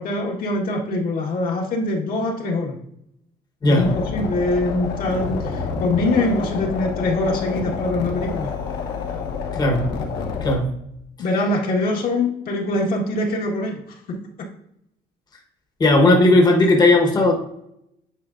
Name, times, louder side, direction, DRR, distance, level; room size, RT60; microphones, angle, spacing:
voice 1, 0.0-2.8 3.7-8.5 11.2-14.2, left 2 dB, 60° left, -1 dB, 1.5 m, -23 dB
voice 2, 3.6-3.9 9.5-9.9 10.4-10.7 15.8-17.3, left 2 dB, 25° left, 0 dB, 1.1 m, -16 dB
sound 1, 3.8-10.5, left 5 dB, 85° left, 1.3 m, -28 dB
9.2 x 4.4 x 2.5 m, 0.77 s
cardioid pair, 110°, 17 cm